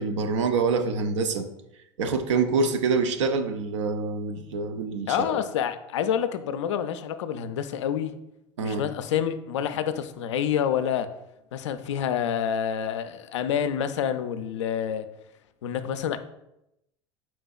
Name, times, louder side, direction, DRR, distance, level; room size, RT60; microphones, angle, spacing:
voice 1, 0.0-1.5 2.0-5.4 8.6-8.8, right 4 dB, 85° right, 0.5 m, -26 dB
voice 2, 5.1-8.1 8.6-11.1 11.5-15.1 15.6-16.2, left 9 dB, 85° left, 0.4 m, -28 dB
4.5 x 4.1 x 2.3 m
hypercardioid pair, 85°, 15 cm